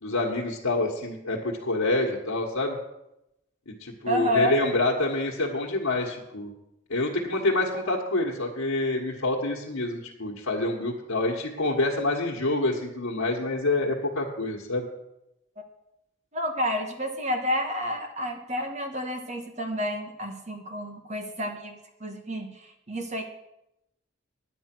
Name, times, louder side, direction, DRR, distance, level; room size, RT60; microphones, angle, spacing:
voice 1, 0.0-2.8 3.7-6.5 6.9-14.9, left 2 dB, 90° left, -2 dB, 1.7 m, -27 dB
voice 2, 4.1-4.6 16.3-23.2, equal, 35° right, 4 dB, 1.5 m, -30 dB
10.0 x 9.4 x 6.2 m, 0.86 s
head